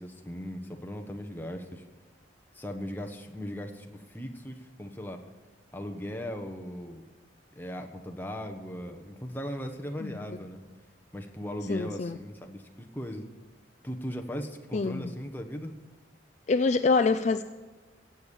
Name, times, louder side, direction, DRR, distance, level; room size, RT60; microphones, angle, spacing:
voice 1, 0.0-1.8 2.5-5.2 5.7-7.0 7.6-10.6 11.1-13.3 13.8-15.7, equal, 10° left, 3 dB, 1.1 m, -38 dB
voice 2, 11.7-12.2 14.7-15.1 16.5-17.4, left 4 dB, 40° left, 10 dB, 0.4 m, -25 dB
16.0 x 8.3 x 7.1 m, 1.3 s
head